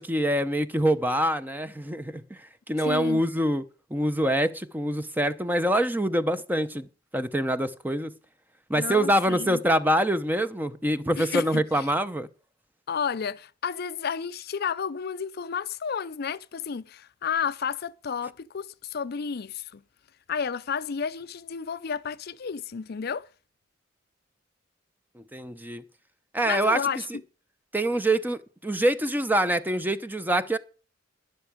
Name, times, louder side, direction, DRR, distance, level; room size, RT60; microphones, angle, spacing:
voice 1, 0.0-3.6 3.9-6.9 7.1-8.1 8.7-12.3 25.2-25.8 26.3-26.8 27.7-30.6, right 1 dB, 10° right, 0.8 m, -25 dB
voice 2, 2.8-3.2 8.7-9.6 11.2-11.9 12.9-19.8 20.3-23.3 26.4-27.1, left 6 dB, 55° left, 0.5 m, -31 dB
12.0 x 10.5 x 5.1 m
head